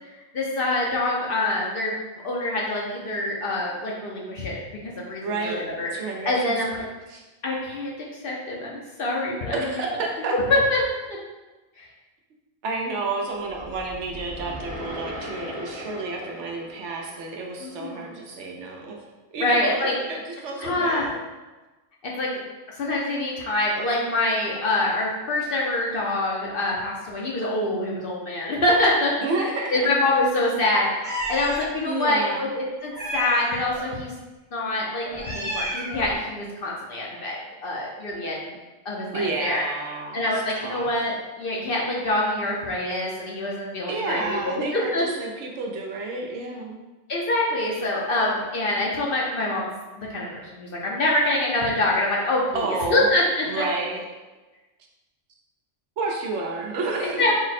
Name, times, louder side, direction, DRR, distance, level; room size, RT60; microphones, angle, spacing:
voice 1, 0.1-2.0 2.2-6.9 7.4-7.9 8.2-9.7 10.2-10.8 11.8-11.9 17.6-18.1 19.4-19.9 20.6-21.1 22.0-22.4 22.8-29.1 29.7-34.1 34.5-38.5 38.8-39.6 40.1-45.0 47.1-49.7 50.0-53.6 57.0-57.3, left 2 dB, 55° left, -3 dB, 0.7 m, -25 dB
voice 2, 5.2-5.6 5.9-7.2 9.5-10.3 12.6-19.0 19.3-19.8 20.1-21.2 29.2-29.7 31.8-32.5 39.1-41.1 43.9-46.8 52.5-53.0 53.5-54.0 56.0-57.2, right 3 dB, 70° right, 0 dB, 0.9 m, -30 dB
sound 1, 13.4-17.8, equal, 85° left, 1.6 m, -38 dB
Meow, 31.0-31.7 32.9-33.8 35.0-36.2, equal, 10° right, 0.7 m, -31 dB
4.0 x 2.1 x 4.0 m, 1.2 s
omnidirectional pair, 1.3 m